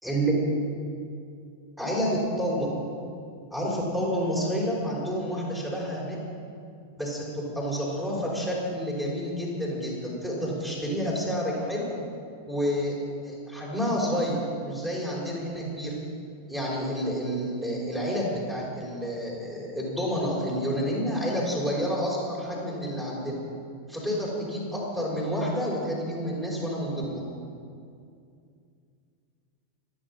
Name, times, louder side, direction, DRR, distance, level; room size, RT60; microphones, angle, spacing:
voice 1, 0.0-0.4 1.8-2.7 3.5-6.2 7.0-11.8 12.5-13.0 13.2-16.0 16.5-23.4 23.9-27.2, equal, 5° right, -5 dB, 5.4 m, -29 dB
24.5 x 9.7 x 5.9 m, 2.4 s
figure-of-eight pair, 90°, 0 cm